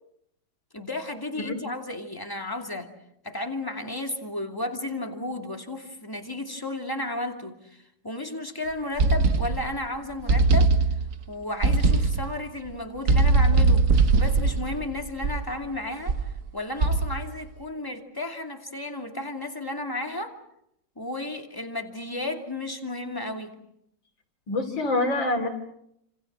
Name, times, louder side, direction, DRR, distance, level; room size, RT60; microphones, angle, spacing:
voice 1, 0.7-2.9 3.2-10.8 11.3-13.8 14.2-16.2 16.5-20.3 21.0-23.5, left 2 dB, 10° left, 4 dB, 2.6 m, -33 dB
sound 1, 9.0-9.8 10.3-11.2 11.6-12.4 13.1-15.6 16.1-16.4 16.8-17.3, right 3 dB, 45° right, 1.5 m, -21 dB
voice 2, 24.5-25.5, left 2 dB, 65° left, 5 dB, 3.5 m, -26 dB
29.5 x 27.5 x 6.2 m, 0.77 s
omnidirectional pair, 2.3 m